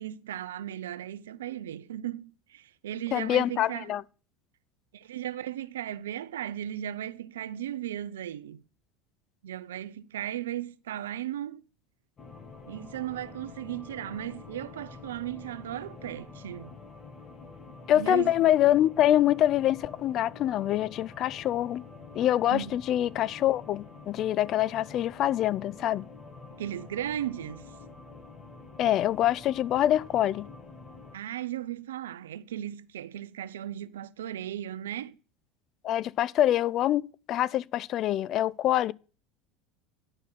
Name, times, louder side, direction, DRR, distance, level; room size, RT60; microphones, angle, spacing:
voice 1, 0.0-3.9 4.9-8.6 9.4-11.6 12.7-16.7 18.0-18.5 22.5-22.7 26.5-27.6 31.1-35.2, right 11 dB, 85° right, 0.5 m, -36 dB
voice 2, 3.1-4.0 17.9-21.8 22.1-26.0 28.8-30.5 35.8-38.9, left 12 dB, 50° left, 0.4 m, -25 dB
sound 1, 12.2-31.2, left 4 dB, 35° left, 1.9 m, -47 dB
11.0 x 4.3 x 7.3 m
hypercardioid pair, 85°, 0 cm